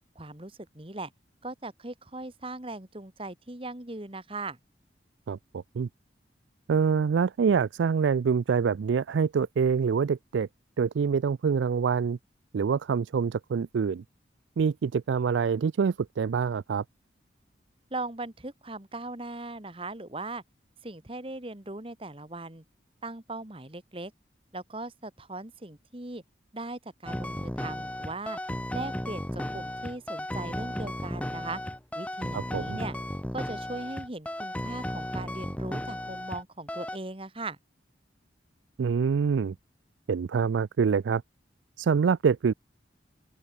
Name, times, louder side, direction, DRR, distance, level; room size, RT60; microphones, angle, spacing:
voice 1, 0.1-1.1 1.4-4.6 17.9-20.4 20.8-22.6 23.0-24.1 24.5-26.2 26.5-28.4 28.7-31.6 31.9-33.0 33.3-37.6, right 2 dB, 30° right, 1.6 m, -39 dB
voice 2, 5.3-5.9 6.7-10.5 10.8-12.2 12.5-14.0 14.6-16.8 32.3-32.8 38.8-39.6 40.1-41.2 41.8-42.5, right 6 dB, 85° right, 0.4 m, -25 dB
sound 1, 27.1-36.4 36.7-37.0, left 1 dB, 5° left, 1.4 m, -34 dB
open air
head